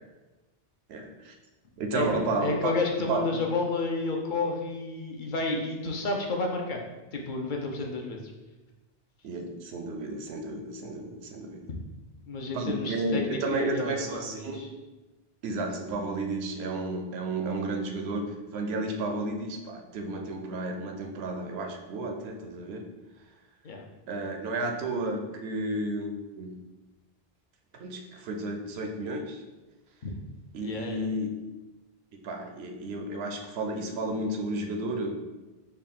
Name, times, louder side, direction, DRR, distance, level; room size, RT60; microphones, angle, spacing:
voice 1, 0.9-1.3 1.8-2.7 3.1-3.4 9.2-11.7 12.5-14.6 15.4-22.9 24.1-26.6 27.7-29.4 30.5-31.3 32.1-35.2, right 2 dB, 85° right, 4 dB, 0.8 m, -32 dB
voice 2, 1.9-6.8 7.1-8.3 11.7-11.8 12.3-14.7 23.6-23.8 30.0-30.1 30.6-31.1, left 3 dB, 60° left, 1 dB, 0.6 m, -31 dB
4.2 x 2.3 x 3.6 m, 1.1 s
omnidirectional pair, 1.0 m